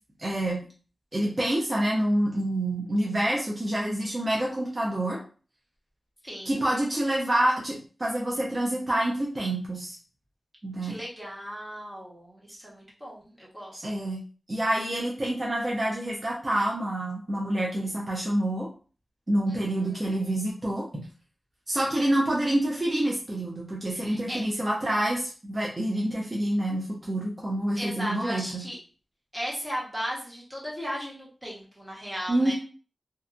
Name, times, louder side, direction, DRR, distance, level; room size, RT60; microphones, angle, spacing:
voice 1, 0.2-0.6 1.1-5.2 6.5-10.0 10.6-11.0 13.8-14.2 14.5-18.7 19.3-21.0 21.7-28.6 32.3-32.5, right 1 dB, 35° right, -4 dB, 0.6 m, -27 dB
voice 2, 6.2-6.6 10.8-13.8 19.5-20.2 23.9-24.4 27.7-28.8 29.3-32.5, equal, 10° right, -6 dB, 1.2 m, -36 dB
2.6 x 2.3 x 2.5 m, 0.38 s
wide cardioid pair, 80°, 0 cm